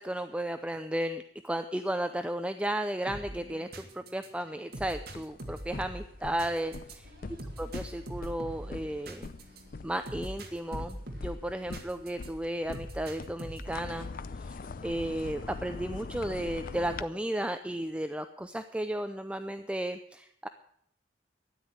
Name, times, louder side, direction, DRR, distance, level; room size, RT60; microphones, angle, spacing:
voice 1, 0.0-7.1 7.6-9.3 9.8-14.1 14.4-20.5, right 1 dB, 5° right, 9 dB, 0.5 m, -34 dB
sound 1, 3.1-12.3 12.7-13.8, right 1 dB, 60° right, 2.2 m, -44 dB
sound 2, 4.9-17.0, left 3 dB, 55° left, 0.6 m, -43 dB
13.0 x 10.0 x 7.9 m, 0.70 s
head